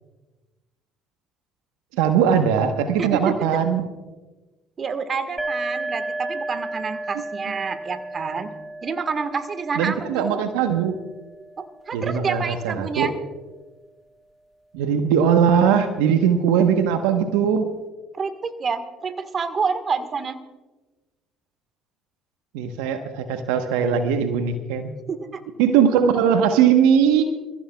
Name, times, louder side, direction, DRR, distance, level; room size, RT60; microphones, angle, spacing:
voice 1, 1.9-3.8 7.1-7.5 9.7-11.0 11.9-13.1 14.7-17.7 22.5-25.0 25.6-27.2, right 8 dB, 80° right, 7 dB, 1.0 m, -20 dB
voice 2, 3.0-3.5 4.8-8.5 8.8-10.4 11.6-13.1 18.1-20.4 25.1-25.4, right 5 dB, 40° right, 10 dB, 1.4 m, -28 dB
sound 1, 5.4-12.9, right 2 dB, 10° right, 1.4 m, -34 dB
27.0 x 15.0 x 2.3 m, 1.2 s
hypercardioid pair, 65°, 0 cm